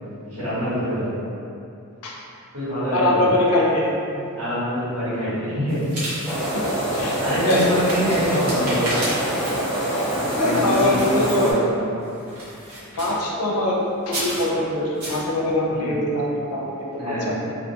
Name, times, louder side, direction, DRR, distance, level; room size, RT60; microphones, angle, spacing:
voice 1, 0.2-1.1 2.5-3.2 4.1-5.8 6.9-7.8 8.0-8.8 9.8-10.0 10.3-11.0 11.3-11.9 15.7-15.9 17.0-17.3, equal, 90° right, -12 dB, 1.2 m, -26 dB
voice 2, 2.9-3.9 6.9-7.1 7.5-7.6 10.4-11.5 12.9-13.8 14.1-17.3, left 1 dB, 85° left, -3 dB, 0.5 m, -22 dB
sound 1, 5.7-11.6 12.0-13.3 14.0-14.5 15.0-15.2, right 1 dB, 75° right, 0.9 m, -33 dB
sound 2, 6.3-11.5, right 1 dB, 5° left, 0.3 m, -25 dB
2.4 x 2.2 x 2.7 m, 2.7 s
head